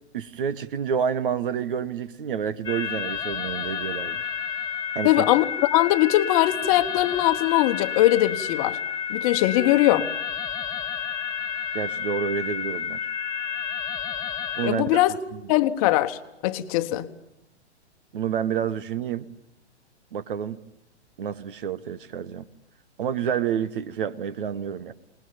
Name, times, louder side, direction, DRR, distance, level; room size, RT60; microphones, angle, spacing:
voice 1, 0.1-4.3 4.9-5.3 11.7-13.0 14.6-15.4 18.1-19.3 20.1-20.6 21.2-22.5 23.0-24.9, right 8 dB, 50° right, 1.2 m, -29 dB
sound 1, 2.6-14.7, left 8 dB, 10° left, 2.4 m, -30 dB
voice 2, 5.0-5.4 5.7-8.8 9.1-10.1 14.6-15.1 15.5-16.2 16.4-17.1, left 15 dB, 30° left, 1.3 m, -21 dB
27.0 x 20.0 x 8.9 m
figure-of-eight pair, 115°, 34 cm